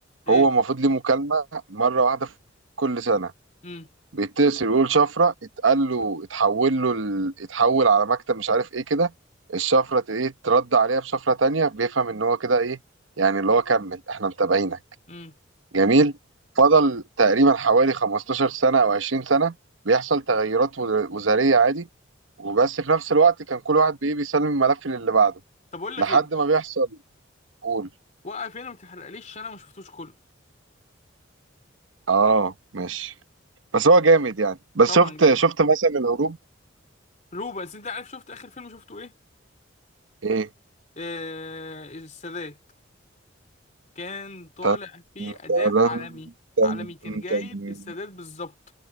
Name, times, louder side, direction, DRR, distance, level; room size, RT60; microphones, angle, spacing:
voice 1, 0.3-2.3 2.8-3.3 4.1-5.3 5.6-9.1 9.5-12.8 13.2-14.8 15.7-16.1 16.6-19.5 19.8-21.9 22.4-25.3 26.0-26.9 27.6-27.9 32.1-33.1 33.7-36.4 40.2-40.5 44.6-44.8 45.2-46.0 46.6-47.7, right 4 dB, 75° right, 1.0 m, -21 dB
voice 2, 25.7-26.3 28.2-30.2 34.9-35.3 37.3-39.1 41.0-42.6 43.9-46.3 46.6-48.5, left 3 dB, 40° left, 3.0 m, -37 dB
head